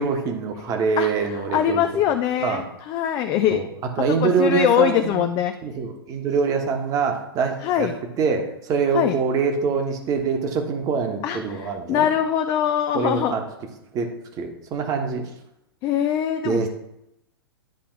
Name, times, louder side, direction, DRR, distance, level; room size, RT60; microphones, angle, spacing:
voice 1, 0.0-1.9 2.4-2.6 3.5-3.7 4.0-5.3 5.6-7.9 8.2-12.1 12.9-13.4 13.9-15.3 16.4-16.7, right 5 dB, 30° right, 4 dB, 1.3 m, -24 dB
voice 2, 1.5-3.6 4.1-5.5 7.6-8.0 8.9-9.2 11.2-13.4 15.8-16.7, left 10 dB, 30° left, 7 dB, 0.4 m, -22 dB
10.5 x 3.5 x 4.8 m, 0.83 s
figure-of-eight pair, 105°, 13 cm